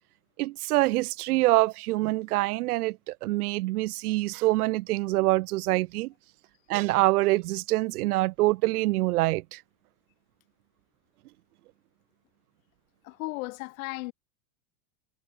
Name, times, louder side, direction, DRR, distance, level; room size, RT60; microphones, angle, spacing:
voice 1, 0.4-6.1 6.7-9.6, right 19 dB, 80° right, 1.0 m, -25 dB
voice 2, 13.0-14.1, left 23 dB, 65° left, 2.5 m, -35 dB
supercardioid pair, 150°, 45 cm